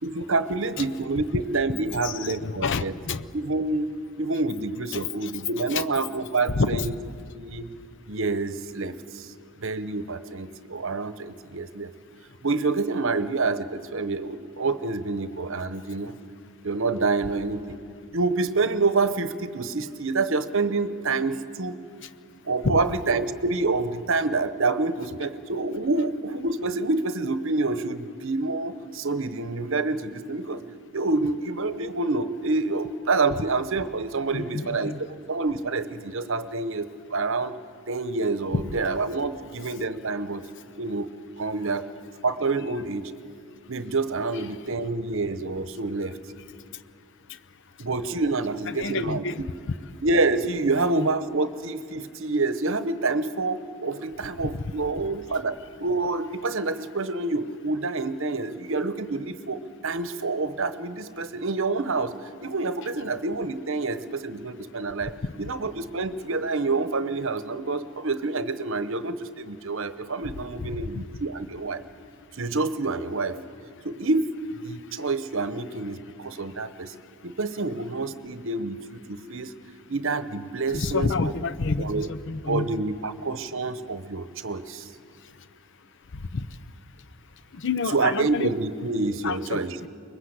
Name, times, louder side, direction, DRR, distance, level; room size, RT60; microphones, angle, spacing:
voice 1, 0.0-2.9 3.3-6.9 7.3-7.7 8.1-9.3 9.6-11.9 12.4-16.1 16.6-17.8 18.1-21.8 22.5-30.6 30.9-34.9 35.3-37.5 37.9-40.4 40.8-41.9 42.2-43.1 43.7-46.2 47.8-49.5 50.0-62.1 62.4-65.1 65.4-71.8 72.3-73.4 73.8-76.9 77.2-79.5 79.9-81.3 81.8-82.1 82.5-84.9 87.9-89.8, right 3 dB, 60° right, 12 dB, 1.0 m, -27 dB
voice 2, 1.9-3.2 4.9-5.3 5.7-5.8 6.5-6.9 22.6-22.8 34.3-35.0 38.5-38.6 48.7-49.7 50.7-51.1 54.4-54.7 70.6-71.0 80.7-82.7 86.1-86.5 87.5-88.5 89.2-89.9, left 4 dB, 55° left, 12 dB, 0.7 m, -29 dB
24.0 x 21.0 x 8.1 m, 2.5 s
head